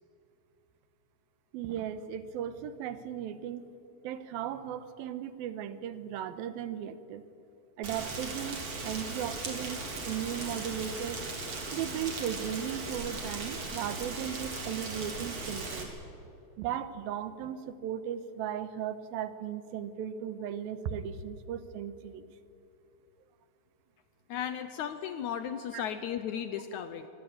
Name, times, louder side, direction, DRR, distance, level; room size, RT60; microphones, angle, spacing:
voice 1, 1.5-3.6 4.0-7.2 7.8-11.2 11.7-15.9 16.6-22.3 25.7-25.8, right 9 dB, 85° right, 12 dB, 2.8 m, -36 dB
Rain, 7.8-15.8, right 3 dB, 45° right, 4.2 m, -38 dB
voice 2, 24.3-27.1, left 9 dB, 70° left, 10 dB, 1.8 m, -35 dB
25.0 x 19.0 x 8.7 m, 2.7 s
omnidirectional pair, 4.2 m